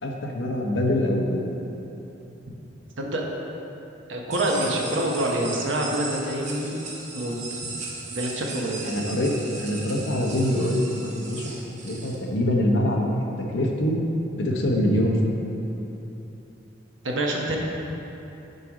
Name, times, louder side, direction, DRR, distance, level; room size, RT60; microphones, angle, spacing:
voice 1, 0.0-1.5 8.8-11.6 11.8-14.0 14.4-15.4, left 1 dB, 75° left, 1 dB, 0.9 m, -24 dB
voice 2, 4.1-6.8 7.1-7.6 8.1-9.0 17.0-17.6, right 1 dB, 90° right, -1 dB, 1.0 m, -26 dB
sound 1, 4.3-12.2, right 3 dB, 40° right, 0.9 m, -37 dB
6.8 x 4.8 x 4.9 m, 3.0 s
head